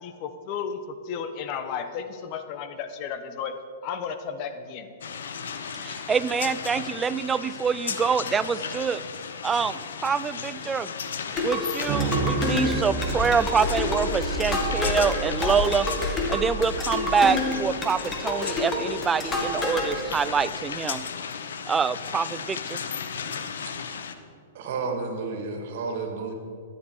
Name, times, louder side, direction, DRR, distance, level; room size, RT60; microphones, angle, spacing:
voice 1, 0.0-3.5 3.8-4.9, left 7 dB, 45° left, 9 dB, 1.1 m, -33 dB
sound 1, 5.0-24.1, left 6 dB, 80° left, 1.0 m, -35 dB
voice 2, 5.8-9.0 9.4-10.9 11.4-15.9 16.3-21.0 21.7-22.8, right 6 dB, 15° right, 16 dB, 0.4 m, -26 dB
sound 2, 11.3-19.9, left 2 dB, 15° left, 2.0 m, -28 dB
sound 3, 11.9-20.3, right 4 dB, 40° right, 1.8 m, -34 dB
voice 3, 24.5-26.3, right 4 dB, 60° right, 4 dB, 2.3 m, -31 dB
14.5 x 10.5 x 4.9 m, 2.3 s
hypercardioid pair, 130°, 0 cm